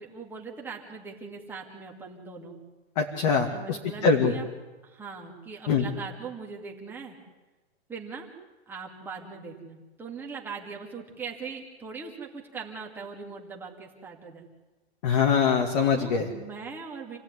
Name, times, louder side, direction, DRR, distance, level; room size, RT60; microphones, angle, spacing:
voice 1, 0.0-2.5 3.5-4.5 4.8-7.2 7.9-8.3 8.7-14.5 16.0-17.2, right 5 dB, 5° right, -1 dB, 2.4 m, -40 dB
voice 2, 3.0-3.8 4.0-4.3 5.7-5.9 15.0-16.3, left 6 dB, 35° left, 2 dB, 2.4 m, -23 dB
28.5 x 17.0 x 9.7 m, 1.2 s
hypercardioid pair, 175°, 33 cm